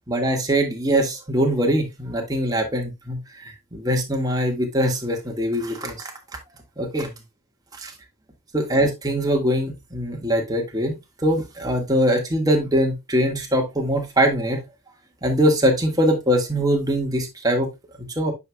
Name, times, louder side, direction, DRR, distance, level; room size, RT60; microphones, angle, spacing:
voice 1, 0.1-6.1 6.8-7.1 7.8-7.9 8.5-14.6 15.2-17.7 18.0-18.3, equal, 20° right, 2 dB, 1.6 m, -22 dB
9.2 x 5.4 x 2.2 m, 0.22 s
head